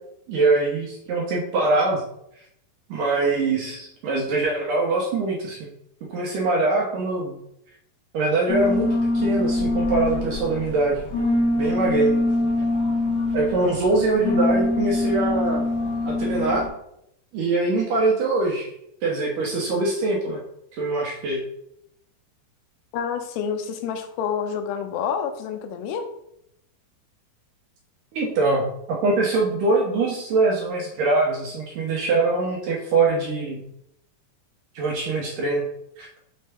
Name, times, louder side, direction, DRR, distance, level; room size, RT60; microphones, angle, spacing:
voice 1, 0.3-2.0 2.9-5.7 6.1-7.3 8.1-11.0 11.6-12.2 13.3-15.7 16.1-16.6 17.3-18.7 19.0-20.4 20.8-21.4 28.1-33.6 34.8-35.6 36.0-36.1, right 3 dB, 70° right, -2 dB, 2.2 m, -23 dB
sound 1, 8.5-16.7, left 2 dB, 35° left, 1.6 m, -24 dB
voice 2, 22.9-26.1, left 7 dB, 85° left, 6 dB, 2.8 m, -28 dB
6.6 x 5.3 x 3.4 m, 0.76 s
omnidirectional pair, 4.8 m